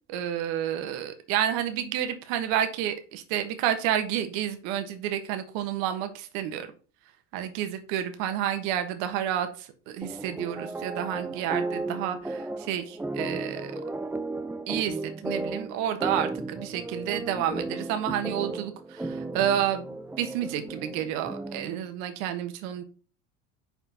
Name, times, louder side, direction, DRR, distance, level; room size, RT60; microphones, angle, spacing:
voice 1, 0.1-6.7 7.3-13.8 14.7-19.9 20.2-22.8, right 10 dB, 75° right, 8 dB, 1.4 m, -30 dB
sound 1, 10.0-21.8, right 2 dB, 5° right, 0.4 m, -35 dB
5.9 x 4.5 x 5.8 m, 0.38 s
supercardioid pair, 100°, 35 cm